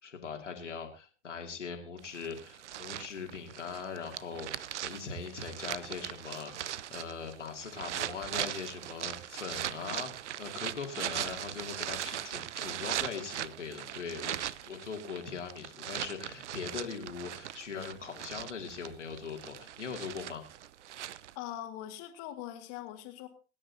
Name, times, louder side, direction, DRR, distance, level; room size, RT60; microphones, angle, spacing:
voice 1, 0.0-10.1 10.4-20.4, left 5 dB, 85° left, 3 dB, 2.6 m, -41 dB
sound 1, 2.0-21.3, right 11 dB, 75° right, 0.6 m, -39 dB
voice 2, 21.4-23.3, left 12 dB, 45° left, 6 dB, 2.2 m, -42 dB
21.5 x 10.0 x 2.8 m, 0.34 s
figure-of-eight pair, 90°, 35 cm